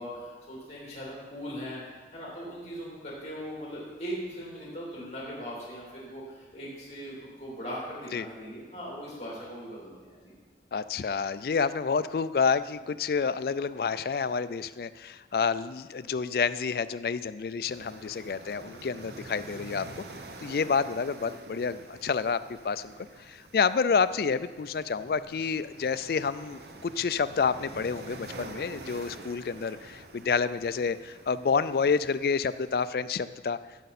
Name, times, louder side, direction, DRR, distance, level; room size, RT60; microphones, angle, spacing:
voice 1, 0.0-10.3, equal, 40° left, -5 dB, 3.0 m, -39 dB
voice 2, 10.7-19.9 20.4-22.4 22.6-22.9 23.2-33.6, left 5 dB, 55° left, 14 dB, 0.3 m, -29 dB
sound 1, 17.7-32.9, right 2 dB, 65° right, 0.8 m, -47 dB
15.5 x 6.8 x 4.2 m, 1.5 s
head